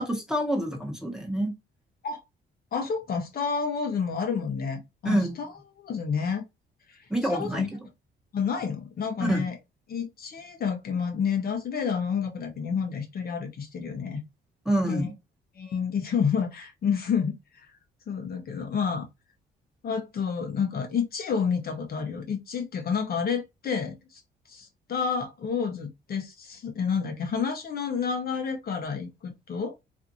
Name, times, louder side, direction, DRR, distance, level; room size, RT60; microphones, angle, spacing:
voice 1, 0.0-1.5 5.0-5.4 7.1-7.7 9.2-9.4 14.7-15.1, right 1 dB, 5° right, 1.0 m, -27 dB
voice 2, 2.7-5.5 5.8-6.4 6.9-7.7 8.3-9.6 9.9-14.2 14.9-15.1 15.6-17.3 17.6-17.7 18.1-19.1 19.8-24.2 24.5-29.7, left 6 dB, 50° left, 0.7 m, -29 dB
2.5 x 2.4 x 2.6 m
cardioid pair, 90°, 20 cm